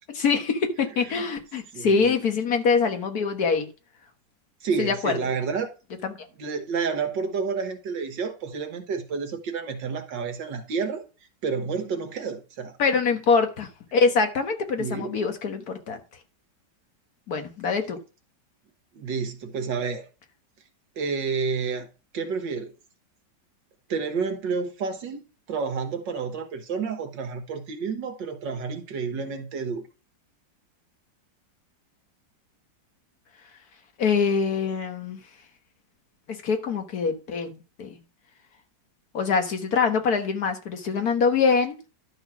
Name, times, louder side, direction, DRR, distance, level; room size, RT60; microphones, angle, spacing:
voice 1, 0.1-3.7 4.8-5.2 6.0-6.1 12.8-16.0 17.3-18.0 34.0-35.2 36.3-38.0 39.1-41.8, left 5 dB, 55° left, 1.8 m, -24 dB
voice 2, 1.7-2.2 4.6-5.7 6.4-11.0 11.4-12.8 14.8-15.2 18.9-20.1 21.0-21.9 22.1-22.7 23.9-25.2 25.5-29.8, right 5 dB, 75° right, 2.0 m, -30 dB
11.5 x 4.1 x 6.0 m
omnidirectional pair, 2.0 m